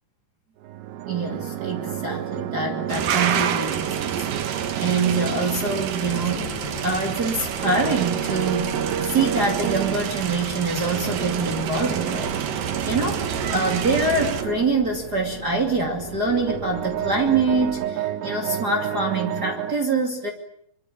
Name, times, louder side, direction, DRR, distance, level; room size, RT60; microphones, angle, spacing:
sound 1, 0.6-6.8 7.6-10.1 10.9-14.7 16.0-19.7, right 10 dB, 85° right, 3.4 m, -30 dB
voice 1, 1.1-8.7 9.0-12.3 12.8-20.3, right 3 dB, 30° right, 1 dB, 2.6 m, -25 dB
sound 2, 2.9-14.4, right 8 dB, 60° right, 3.0 m, -29 dB
sound 3, 6.0-17.7, right 1 dB, 45° right, 9.0 m, -39 dB
25.5 x 24.5 x 8.5 m, 0.69 s
omnidirectional pair, 4.8 m